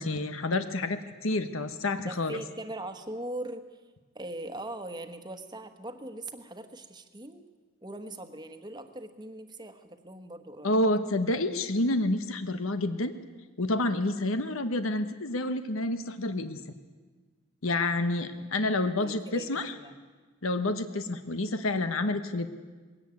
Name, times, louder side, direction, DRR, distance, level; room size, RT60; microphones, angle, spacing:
voice 1, 0.0-2.4 10.6-13.1 13.6-16.6 17.6-19.7 20.4-22.5, left 2 dB, 75° left, 10 dB, 1.2 m, -29 dB
voice 2, 2.0-3.8 4.1-7.4 7.8-10.8 19.0-19.9, right 1 dB, 20° right, 9 dB, 1.3 m, -40 dB
20.5 x 17.5 x 9.6 m, 1.4 s
head